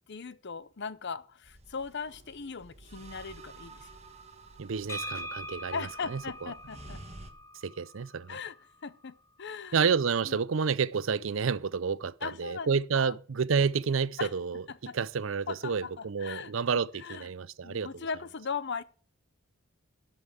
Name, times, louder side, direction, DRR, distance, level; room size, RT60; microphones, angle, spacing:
voice 1, 0.1-3.9 5.7-7.0 8.3-8.6 8.8-9.8 10.2-10.4 12.2-13.2 14.2-14.3 14.7-15.0 15.5-16.5 17.0-17.3 17.6-18.8, left 5 dB, 55° left, 0.7 m, -38 dB
sound 1, 1.4-7.3, right 2 dB, 30° right, 1.3 m, -51 dB
voice 2, 4.6-6.5 7.6-8.4 9.7-14.6 14.9-18.1, right 5 dB, 65° right, 0.5 m, -30 dB
sound 2, 4.9-8.7, equal, 15° left, 0.7 m, -42 dB
12.0 x 5.5 x 8.0 m
head